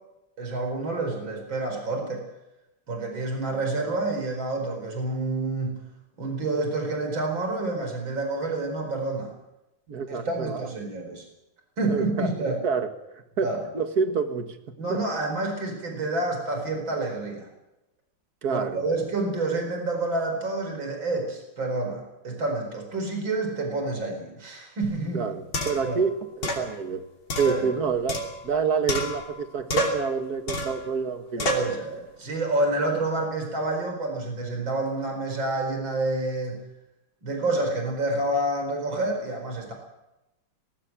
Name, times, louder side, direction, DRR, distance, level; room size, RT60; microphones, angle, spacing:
voice 1, 0.4-2.3 2.9-5.8 6.2-9.3 10.1-11.3 11.8-12.6 13.4-13.6 14.8-17.5 18.5-25.2 25.8-26.0 27.4-27.7 31.4-36.7 37.2-39.7, right 2 dB, 70° right, 3 dB, 5.4 m, -28 dB
voice 2, 9.9-10.7 11.8-15.0 18.4-18.9 25.1-27.0 27.3-31.8, right 5 dB, 50° right, 8 dB, 2.1 m, -28 dB
sound 1, 24.8-24.9 25.5-25.9 26.4-26.7 27.3-28.6 28.9-29.4 29.7-30.1 30.5-30.8 31.4-31.7, left 1 dB, 85° left, 3.8 m, -29 dB
20.0 x 18.5 x 7.5 m, 0.95 s
omnidirectional pair, 2.2 m